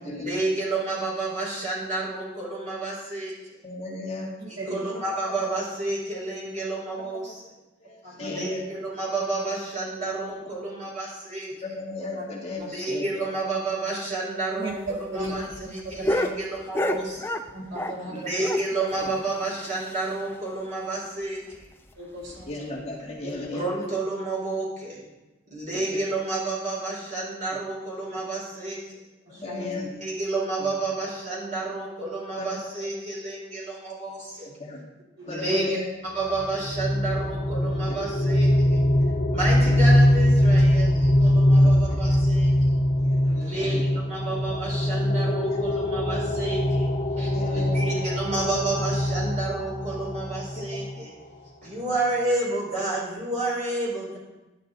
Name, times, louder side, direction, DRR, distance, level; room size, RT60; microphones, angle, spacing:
voice 1, 0.0-3.6 4.5-7.5 8.2-11.5 12.6-17.4 18.1-21.7 23.5-25.0 25.5-29.0 29.7-34.5 35.3-35.8 36.0-38.8 39.3-42.8 43.3-46.9 47.2-51.1 51.6-54.2, right 2 dB, 40° right, -5 dB, 4.7 m, -30 dB
voice 2, 3.6-4.3 4.7-5.0 7.8-8.6 11.6-13.2 22.5-23.6 25.9-26.0 29.3-29.9 32.4-32.8 34.6-34.8 35.2-35.9 39.7-39.8 41.5-42.0 43.0-44.0 45.5-45.6 47.2-48.0 50.6-50.7, left 3 dB, 30° left, -2 dB, 1.9 m, -36 dB
voice 3, 4.6-5.0 8.0-8.4 10.0-10.1 12.1-12.2 12.6-12.7 14.6-14.7 15.1-15.3 16.2-16.3 16.9-17.0 17.5-18.4 22.0-22.8 23.2-23.3 29.3-29.7 35.2-35.6 39.5-39.6 43.2-43.5, right 1 dB, 85° right, -3 dB, 4.2 m, -37 dB
sound 1, 14.7-18.1 18.4-20.4 20.7-20.8 21.0-21.1 21.5-21.7 22.2-22.5 23.4-23.5, left 1 dB, 10° left, 0.5 m, -31 dB
sound 2, 36.3-51.0, left 1 dB, 45° left, 1.8 m, -22 dB
11.0 x 11.0 x 4.0 m, 1.1 s
head